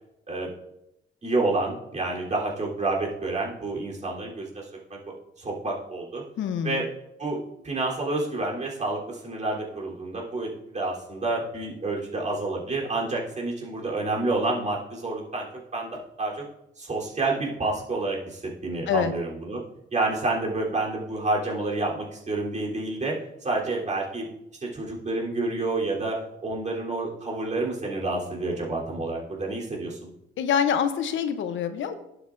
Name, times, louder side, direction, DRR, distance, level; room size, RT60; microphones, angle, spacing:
voice 1, 1.2-4.6 5.4-6.2 6.6-6.8 7.2-15.5 15.7-16.4 16.8-19.6 19.9-23.1 23.4-24.3 24.6-26.1 26.4-30.1, right 2 dB, 35° right, -4 dB, 3.4 m, -29 dB
voice 2, 6.4-6.8 18.9-19.1 30.4-31.9, left 7 dB, 75° left, 10 dB, 0.8 m, -25 dB
11.5 x 7.9 x 2.6 m, 0.85 s
cardioid pair, 90°, 20 cm